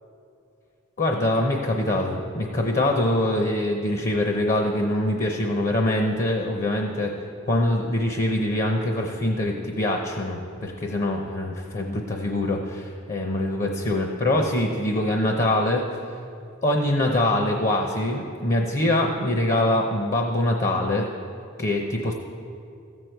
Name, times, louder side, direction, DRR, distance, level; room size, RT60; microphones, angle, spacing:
voice 1, 1.0-7.1 7.5-15.8 16.6-21.1 21.6-22.1, left 1 dB, 40° left, 2 dB, 0.7 m, -24 dB
14.0 x 8.0 x 4.5 m, 2.5 s
head